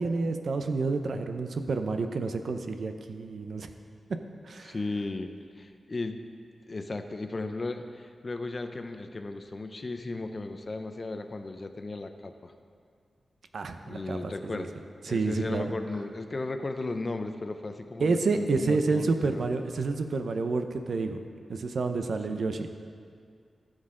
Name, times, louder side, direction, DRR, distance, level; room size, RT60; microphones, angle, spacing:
voice 1, 0.0-3.7 4.5-4.8 13.5-14.7 15.1-15.6 18.0-21.2 21.5-22.7, right 3 dB, 70° right, 7 dB, 0.6 m, -29 dB
voice 2, 4.6-5.3 5.6-6.2 6.7-12.5 13.8-14.7 15.1-19.4 22.3-22.4, left 2 dB, 35° left, 7 dB, 0.5 m, -35 dB
14.5 x 6.4 x 3.8 m, 2.2 s
wide cardioid pair, 105°, 0 cm